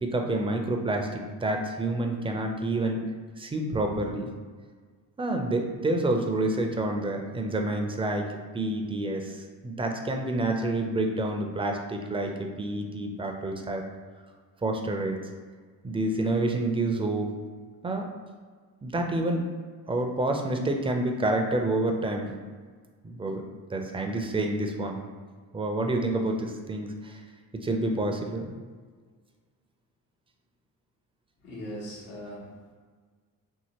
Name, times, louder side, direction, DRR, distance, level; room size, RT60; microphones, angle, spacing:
voice 1, 0.0-3.1 3.4-4.3 5.2-8.3 8.5-13.8 14.6-15.2 15.8-17.3 17.8-18.1 18.8-19.5 19.9-22.3 23.0-23.4 23.7-25.0 25.5-27.2 27.5-28.5, right 2 dB, 15° right, 3 dB, 0.3 m, -28 dB
voice 2, 31.4-32.7, equal, 90° left, -5 dB, 1.1 m, -40 dB
2.8 x 2.8 x 2.9 m, 1.5 s
hypercardioid pair, 60°, 45 cm